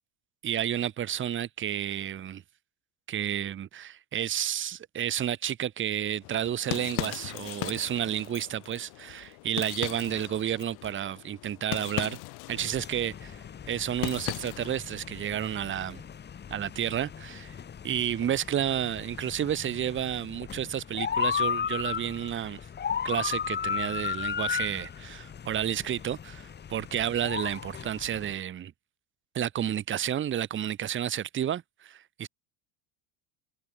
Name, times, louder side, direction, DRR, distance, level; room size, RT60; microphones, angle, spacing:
voice 1, 0.4-2.4 3.1-12.2 12.5-16.0 16.5-17.5 17.8-22.6 23.0-28.7 29.3-32.3, right 10 dB, 25° right, 2.2 m, -31 dB
sound 1, 6.2-14.9, left 27 dB, 55° left, 2.8 m, -38 dB
sound 2, 12.5-28.3, left 7 dB, 20° left, 4.0 m, -35 dB
cardioid pair, 155°, 45 cm